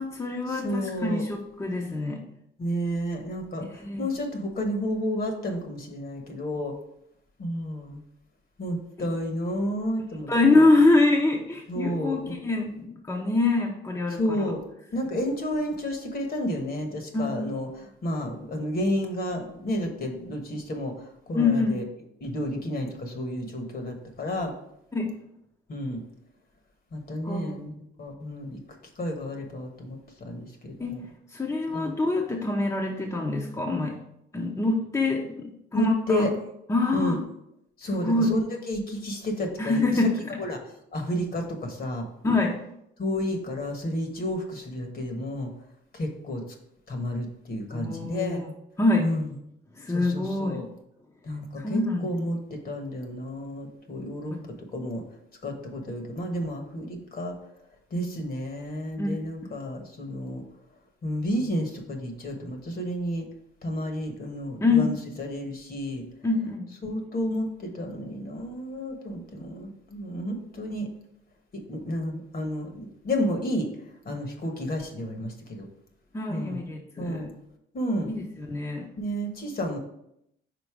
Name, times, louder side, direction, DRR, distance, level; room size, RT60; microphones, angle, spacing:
voice 1, 0.0-2.3 3.7-4.1 9.0-9.1 10.3-14.5 17.1-17.4 21.3-21.8 24.9-25.1 27.2-27.6 30.8-30.9 31.3-34.0 34.3-36.3 36.7-37.2 37.9-38.4 39.6-40.4 42.2-42.6 47.7-48.5 48.8-49.1 49.7-50.6 51.6-52.2 59.0-59.2 64.6-64.9 66.2-66.6 76.1-77.3 78.1-78.9, left 2 dB, 15° left, 1 dB, 0.7 m, -25 dB
voice 2, 0.5-1.2 2.6-6.8 7.4-8.0 8.6-10.7 11.7-12.3 14.2-14.6 14.9-17.7 18.0-20.9 21.3-21.8 22.2-24.5 25.7-26.0 26.9-28.6 29.0-31.0 31.7-32.0 35.7-36.3 36.9-37.2 37.8-40.0 40.4-40.6 40.9-42.0 43.0-45.5 45.9-46.4 46.9-48.4 49.0-49.3 49.9-50.7 51.2-54.4 54.7-55.0 55.4-57.4 57.9-60.4 61.0-63.3 63.6-66.0 66.8-70.9 71.5-73.7 74.0-75.7 76.3-76.6 77.0-77.3 77.7-78.1 79.0-79.8, equal, 50° left, 4 dB, 1.3 m, -31 dB
5.2 x 4.1 x 4.8 m, 0.78 s
cardioid pair, 90°, 20 cm